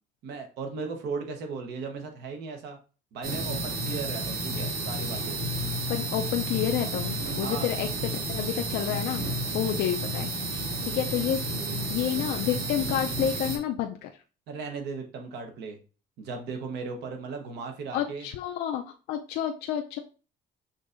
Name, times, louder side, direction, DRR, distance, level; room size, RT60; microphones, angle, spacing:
voice 1, 0.2-2.8 3.1-5.4 7.4-7.7 14.5-15.8 16.2-18.3, right 4 dB, 75° right, 4 dB, 0.9 m, -36 dB
sound 1, 3.2-13.6, right 1 dB, 60° right, 1.4 m, -31 dB
voice 2, 5.9-9.3 9.5-10.3 10.9-11.4 11.7-14.1 17.9-18.8 19.1-20.0, left 10 dB, 85° left, 4 dB, 0.4 m, -29 dB
6.3 x 2.7 x 2.5 m, 0.35 s
cardioid pair, 110°, 17 cm